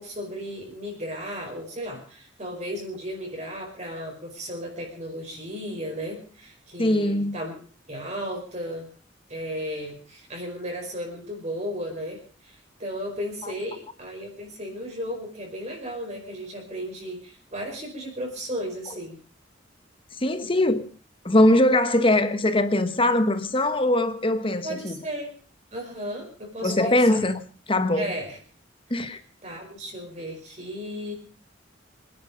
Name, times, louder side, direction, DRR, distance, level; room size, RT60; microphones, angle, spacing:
voice 1, 0.0-7.5 7.9-8.9 9.3-19.2 24.6-25.3 25.7-27.2 28.0-28.4 29.4-31.1, equal, 35° right, 5.1 m, -35 dB
voice 2, 6.8-7.4 13.4-13.5 20.2-20.9 21.2-25.0 26.6-27.4 27.7-28.1 28.9-29.2, left 1 dB, 30° left, 1.2 m, -21 dB
25.0 x 10.5 x 5.2 m
head